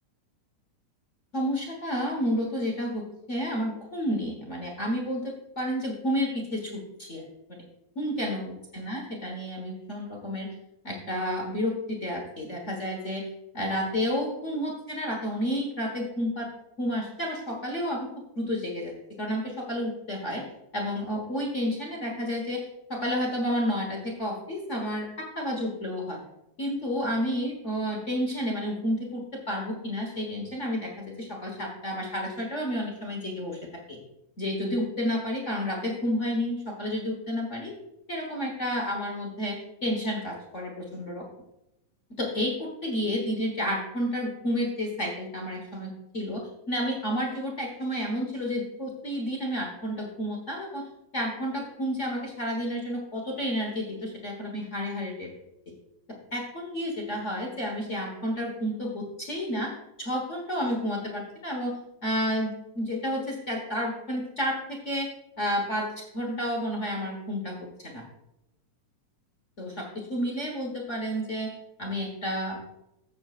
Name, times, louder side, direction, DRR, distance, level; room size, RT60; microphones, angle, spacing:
voice 1, 1.3-7.2 7.5-7.6 7.9-8.4 8.7-10.5 10.8-13.3 13.5-16.5 16.8-18.1 18.4-20.4 20.7-26.2 26.6-33.6 33.9-34.0 34.4-37.7 38.1-41.3 42.2-50.9 51.1-55.3 55.7-55.8 56.3-59.7 60.0-61.8 62.0-65.1 65.4-65.9 66.1-68.0 69.6-72.6, equal, 50° left, -1 dB, 0.8 m, -31 dB
15.0 x 7.4 x 2.5 m, 0.87 s
omnidirectional pair, 3.6 m